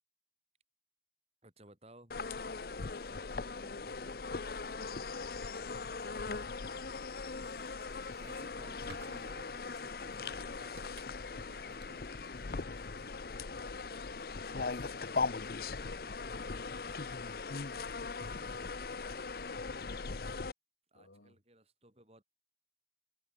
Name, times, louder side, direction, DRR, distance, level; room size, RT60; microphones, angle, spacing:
voice 1, 1.4-2.1 3.0-4.1 7.7-7.9 8.2-12.6 20.9-22.2, right 1 dB, 35° right, 5.3 m, -58 dB
sound 1, 2.1-20.5, left 4 dB, 55° left, 0.7 m, -40 dB
sound 2, 7.2-14.5, right 3 dB, 90° right, 3.0 m, -61 dB
voice 2, 14.5-15.9 20.9-21.4, left 2 dB, 90° left, 2.8 m, -60 dB
head